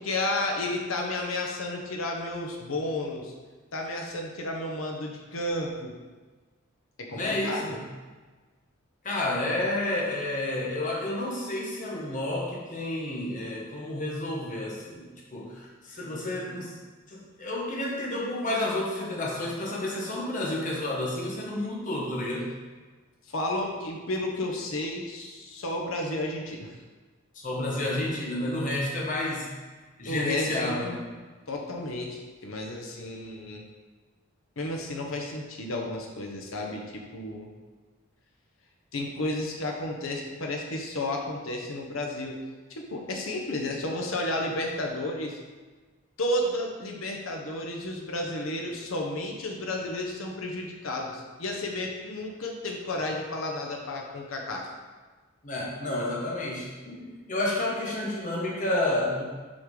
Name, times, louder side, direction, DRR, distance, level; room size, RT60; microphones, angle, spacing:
voice 1, 0.0-3.3 3.7-5.9 7.0-7.7 23.3-26.7 30.1-31.0 31.5-33.6 34.6-37.5 38.9-42.4 42.7-45.4 46.2-54.7, left 1 dB, 75° left, 1 dB, 0.9 m, -32 dB
voice 2, 7.1-7.9 9.0-15.1 15.3-16.7 17.1-22.5 27.3-29.5 30.0-30.9 55.4-59.2, left 1 dB, 40° left, -3 dB, 1.3 m, -30 dB
6.2 x 4.8 x 3.8 m, 1.4 s
head